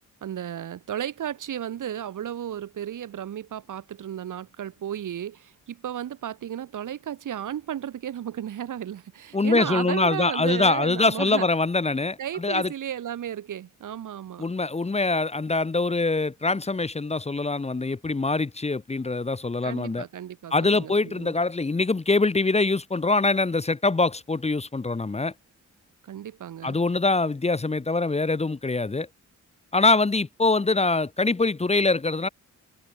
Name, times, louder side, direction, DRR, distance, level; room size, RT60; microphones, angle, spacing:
voice 1, 0.2-11.5 12.2-14.5 19.6-21.3 26.0-26.8, right 10 dB, 80° right, 2.5 m, -34 dB
voice 2, 9.3-12.7 14.4-20.1 20.5-25.3 26.6-29.1 29.7-32.3, left 3 dB, 20° left, 1.1 m, -24 dB
cardioid pair, 90°, 31 cm